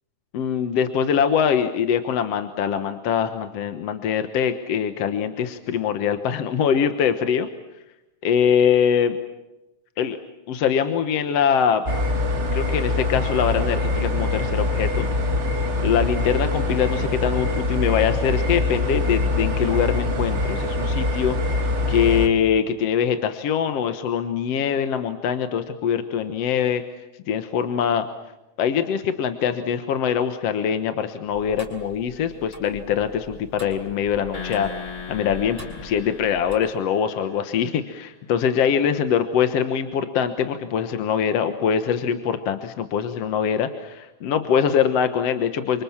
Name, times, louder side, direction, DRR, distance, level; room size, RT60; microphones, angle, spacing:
voice 1, 0.3-7.5 8.2-9.2 10.0-10.2 10.5-11.8 12.5-15.1 15.8-26.8 27.3-28.1 28.6-45.8, left 8 dB, 60° left, 8 dB, 2.1 m, -23 dB
sound 1, 11.9-22.3, left 2 dB, 25° right, 2.1 m, -24 dB
Tick-tock, 31.3-36.6, equal, 5° left, 5.2 m, -44 dB
sound 2, 34.3-37.8, left 5 dB, 35° left, 1.0 m, -38 dB
29.0 x 25.5 x 7.3 m, 0.99 s
omnidirectional pair, 3.3 m